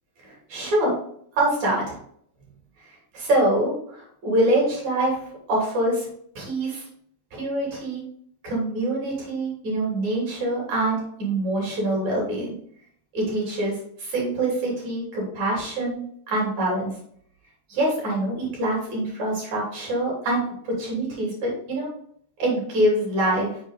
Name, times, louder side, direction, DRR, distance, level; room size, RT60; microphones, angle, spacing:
voice 1, 0.2-0.9 1.3-2.0 3.1-5.2 5.5-6.1 6.3-6.8 7.3-8.0 8.4-12.5 13.1-16.0 16.3-17.0 17.7-21.9 22.4-23.6, right 1 dB, 45° right, -3 dB, 3.3 m, -25 dB
7.3 x 4.8 x 3.9 m, 0.65 s
omnidirectional pair, 5.7 m